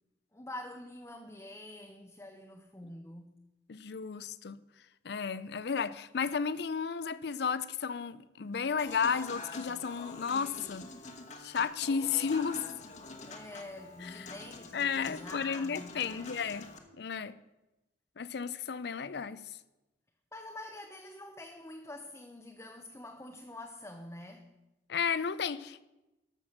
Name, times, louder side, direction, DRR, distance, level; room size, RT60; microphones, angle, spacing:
voice 1, 0.3-3.4 13.2-16.3 20.3-24.6, left 1 dB, 15° left, 0.7 m, -46 dB
voice 2, 3.7-4.6 5.0-10.9 11.4-12.6 14.0-14.3 14.7-16.7 17.0-17.4 18.2-19.4 24.9-25.8, left 6 dB, 65° left, 0.5 m, -33 dB
Human voice / Acoustic guitar / Piano, 8.8-16.8, left 3 dB, 40° left, 1.2 m, -47 dB
13.0 x 6.1 x 6.4 m
head